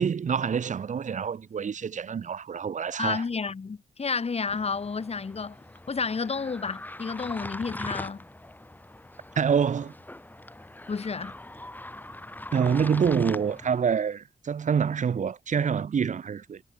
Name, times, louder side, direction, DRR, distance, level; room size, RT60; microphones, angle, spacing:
voice 1, 0.0-3.2 9.3-9.9 12.5-16.6, right 7 dB, 55° right, 1.5 m, -26 dB
voice 2, 3.0-5.6 5.9-8.2 10.9-11.4, left 5 dB, 45° left, 4.3 m, -31 dB
sound 1, 4.5-13.8, left 1 dB, 10° left, 3.3 m, -41 dB
cardioid pair, 75°, 15 cm